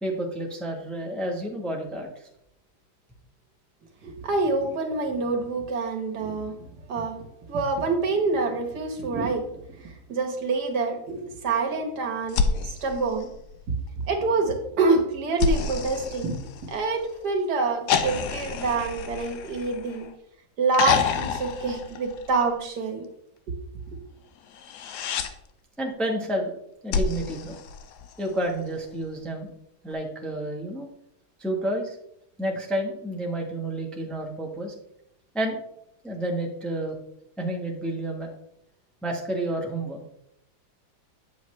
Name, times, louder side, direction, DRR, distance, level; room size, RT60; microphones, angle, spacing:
voice 1, 0.0-2.3 12.5-12.6 25.8-26.6 26.8-27.6 28.2-29.5 29.8-30.9 31.4-32.0 32.4-34.7 35.3-35.6 36.0-37.0 37.4-38.3 39.0-40.0, right 1 dB, ahead, 0 dB, 0.9 m, -30 dB
voice 2, 4.0-6.6 6.9-7.2 7.5-13.3 14.1-20.1 20.6-23.1 23.5-23.6 23.9-24.0, right 3 dB, 80° right, 3 dB, 1.8 m, -26 dB
sound 1, 12.3-13.9 15.4-17.1 17.9-20.2 20.7-22.6 24.5-25.3 26.9-28.4 29.9-30.0, left 6 dB, 80° left, 1.3 m, -28 dB
8.2 x 7.2 x 3.2 m, 0.77 s
omnidirectional pair, 1.7 m